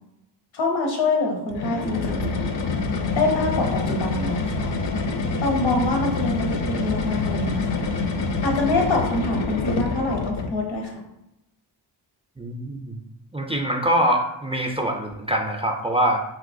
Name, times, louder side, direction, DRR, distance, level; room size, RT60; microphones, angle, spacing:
voice 1, 0.5-2.4 3.1-4.7 5.4-7.8 8.4-11.0, left 2 dB, 90° left, 1 dB, 0.9 m, -25 dB
sound 1, 1.5-10.6, left 3 dB, 65° left, 0.6 m, -26 dB
voice 2, 12.4-13.0 13.3-16.2, right 1 dB, 15° right, 2 dB, 0.3 m, -24 dB
3.0 x 3.0 x 2.5 m, 0.85 s
cardioid pair, 55°, 46 cm